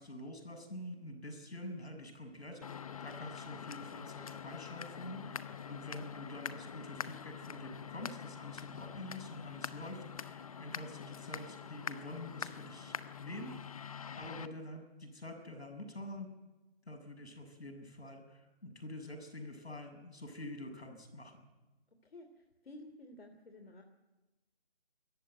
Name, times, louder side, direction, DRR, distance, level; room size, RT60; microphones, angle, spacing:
voice 1, 0.0-13.9 14.2-16.3 16.9-21.4, left 1 dB, 85° left, 6 dB, 6.8 m, -47 dB
sound 1, 2.6-14.5, left 7 dB, 35° left, 0.8 m, -45 dB
voice 2, 22.0-23.8, left 1 dB, 65° left, 5 dB, 3.1 m, -53 dB
24.5 x 14.5 x 9.2 m, 1.1 s
figure-of-eight pair, 155°, 32 cm